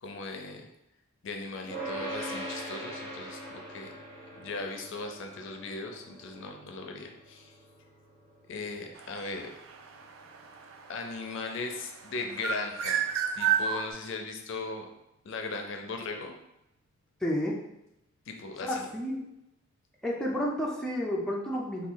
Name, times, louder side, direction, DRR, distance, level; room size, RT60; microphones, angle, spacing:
voice 1, 0.0-0.7 1.2-3.9 4.4-7.5 8.5-9.5 10.9-13.0 13.3-14.9 15.2-16.3 18.3-18.9, left 3 dB, 65° left, 4 dB, 0.4 m, -38 dB
sound 1, 1.7-13.0, right 1 dB, 50° right, 1.3 m, -43 dB
sound 2, 9.0-11.9 12.3-13.9, right 8 dB, 70° right, 0.3 m, -30 dB
voice 2, 17.2-17.6 18.6-19.3 20.0-21.9, equal, 5° left, -4 dB, 0.4 m, -31 dB
3.0 x 2.3 x 3.8 m, 0.86 s
head